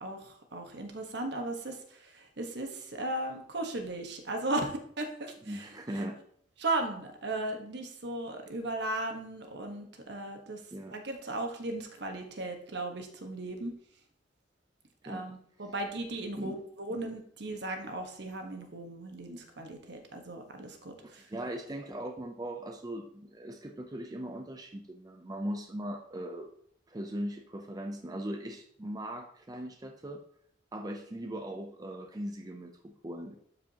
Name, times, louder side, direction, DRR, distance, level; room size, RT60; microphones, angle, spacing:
voice 1, 0.0-5.7 6.6-10.6 10.9-13.7 15.0-21.3, right 2 dB, 65° right, 4 dB, 1.3 m, -36 dB
voice 2, 5.5-6.2 10.7-10.9 15.1-15.2 16.4-16.6 21.0-26.5 26.9-30.2 30.7-33.3, right 1 dB, 20° right, 4 dB, 0.5 m, -39 dB
12.0 x 4.8 x 2.9 m, 0.64 s
head